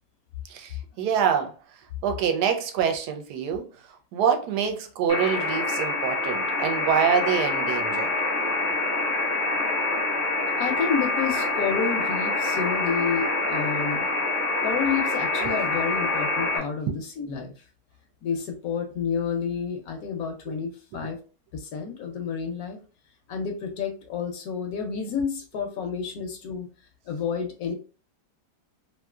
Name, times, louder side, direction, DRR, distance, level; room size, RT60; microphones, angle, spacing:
voice 1, 0.5-1.5 2.0-3.7 4.1-8.1 15.4-15.5, right 7 dB, 75° right, 1.1 m, -25 dB
sound 1, 5.1-16.6, left 3 dB, 15° left, 0.6 m, -26 dB
voice 2, 10.6-14.1 14.6-17.6 18.2-21.2 21.5-22.8 23.3-26.7 27.1-27.7, left 6 dB, 70° left, 0.9 m, -30 dB
3.0 x 2.6 x 2.3 m
omnidirectional pair, 1.9 m